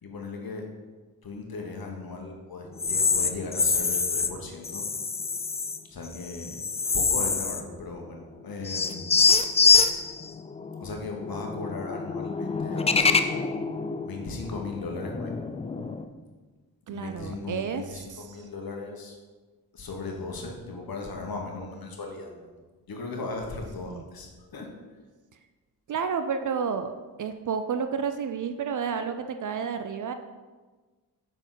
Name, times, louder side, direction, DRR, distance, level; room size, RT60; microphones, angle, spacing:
voice 1, 0.0-0.7 1.2-4.9 5.9-6.6 6.9-9.1 10.8-13.5 14.0-15.3 16.9-19.2 19.7-22.5 22.9-24.7, left 3 dB, 50° left, 2 dB, 1.5 m, -37 dB
sound 1, 2.8-4.3 4.6-5.8 6.1-7.8 8.0-8.1 8.7-16.1, left 4 dB, 15° left, 0.3 m, -26 dB
voice 2, 16.9-18.4 23.9-24.0 25.9-26.9 27.2-30.1, right 6 dB, 45° right, 8 dB, 0.5 m, -31 dB
7.0 x 4.5 x 4.0 m, 1.3 s
hypercardioid pair, 45°, 46 cm